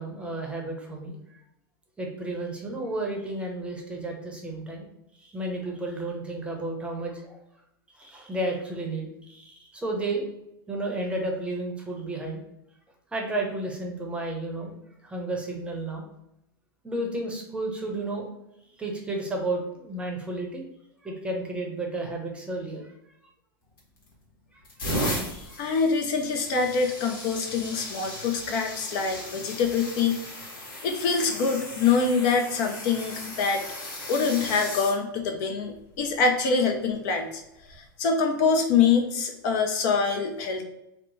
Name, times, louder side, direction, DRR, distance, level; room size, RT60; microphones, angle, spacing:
voice 1, 0.0-1.4 2.0-4.9 5.2-7.4 8.0-10.3 10.7-12.4 13.1-14.7 15.0-16.1 16.8-18.3 18.8-20.7 21.0-22.9 24.5-24.6 25.5-25.6, right 2 dB, 10° right, 0 dB, 0.7 m, -32 dB
sound 1, 23.8-24.1 24.6-35.0 35.8-36.1 37.6-37.8, left 1 dB, 70° left, 1.2 m, -36 dB
voice 2, 25.3-30.2 30.8-33.6 34.1-37.4 38.0-40.6, left 5 dB, 50° left, 3 dB, 0.5 m, -25 dB
2.9 x 2.1 x 3.9 m, 0.84 s
hypercardioid pair, 100°, 12 cm